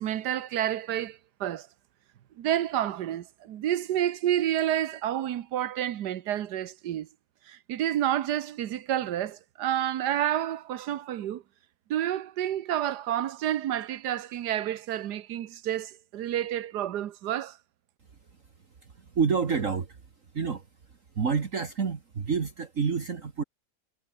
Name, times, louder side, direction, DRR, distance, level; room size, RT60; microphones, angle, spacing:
voice 1, 0.0-1.7 2.4-7.1 7.5-11.4 11.9-17.6, right 11 dB, 80° right, 1.5 m, -29 dB
voice 2, 18.8-20.0 20.3-20.7 21.2-23.4, right 6 dB, 50° right, 2.0 m, -28 dB
omnidirectional pair, 1.7 m